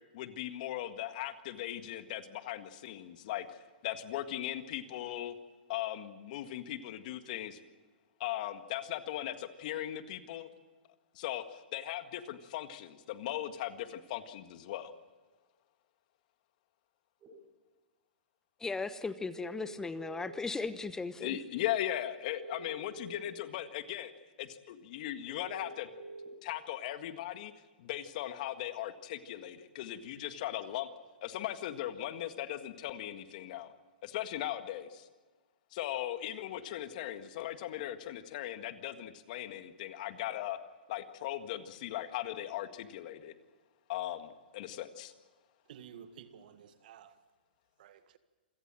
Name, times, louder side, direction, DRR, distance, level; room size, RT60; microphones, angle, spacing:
voice 1, 0.1-3.6 3.8-5.3 5.7-7.6 8.2-10.5 11.2-14.9 21.2-24.1 24.4-25.9 26.4-27.5 27.8-30.9 31.2-33.7 34.0-35.1 35.7-40.6 40.9-43.3 43.9-45.1, left 12 dB, 55° left, 1.8 m, -38 dB
sound 1, 17.2-17.3 19.3-20.5 22.3-23.3 25.3-26.3, right 3 dB, 30° right, 7.2 m, -47 dB
voice 2, 18.6-21.4, left 4 dB, 10° left, 1.0 m, -37 dB
voice 3, 45.6-47.2 47.8-48.2, right 8 dB, 60° right, 1.8 m, -53 dB
27.0 x 17.0 x 7.6 m
hypercardioid pair, 120°, 5 cm